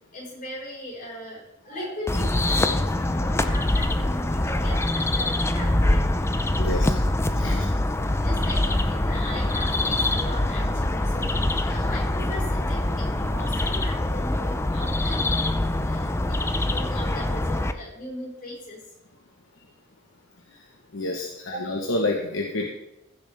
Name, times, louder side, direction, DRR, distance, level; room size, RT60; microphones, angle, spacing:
voice 1, 0.1-7.7 8.2-18.8 21.4-21.7, left 1 dB, 45° left, -4 dB, 4.7 m, -39 dB
sound 1, 2.1-17.7, left 1 dB, 15° left, 0.5 m, -24 dB
voice 2, 6.6-7.0 7.3-7.7 20.9-22.7, left 2 dB, 75° left, 1 dB, 1.2 m, -28 dB
15.5 x 7.2 x 3.5 m, 0.87 s
head